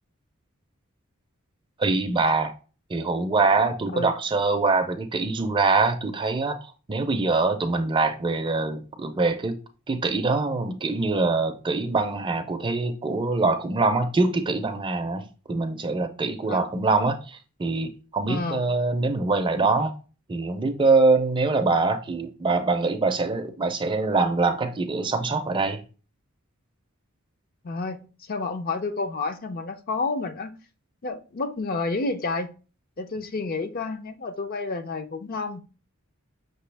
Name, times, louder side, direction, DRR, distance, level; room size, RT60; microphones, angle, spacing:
voice 1, 1.8-2.5 2.9-9.6 9.9-19.9 20.3-25.8, right 3 dB, 25° right, 0.4 m, -24 dB
voice 2, 18.3-18.6 27.6-30.5 31.0-32.5 33.0-35.6, left 3 dB, 45° left, 0.5 m, -30 dB
6.0 x 2.7 x 3.3 m
head